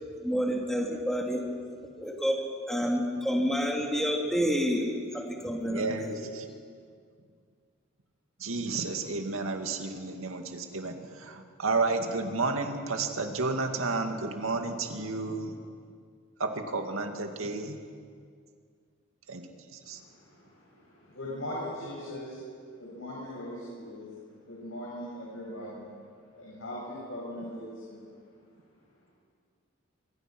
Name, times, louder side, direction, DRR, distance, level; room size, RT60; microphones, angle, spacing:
voice 1, 0.2-1.6 2.0-6.2, equal, ahead, 0 dB, 2.9 m, -29 dB
voice 2, 5.7-6.5 8.4-15.6 16.4-17.8 19.3-20.0, right 3 dB, 85° right, 5 dB, 2.3 m, -32 dB
voice 3, 19.8-22.4 22.8-25.9 26.3-28.2, left 1 dB, 80° left, -6 dB, 7.5 m, -40 dB
25.5 x 24.0 x 6.2 m, 2.1 s
head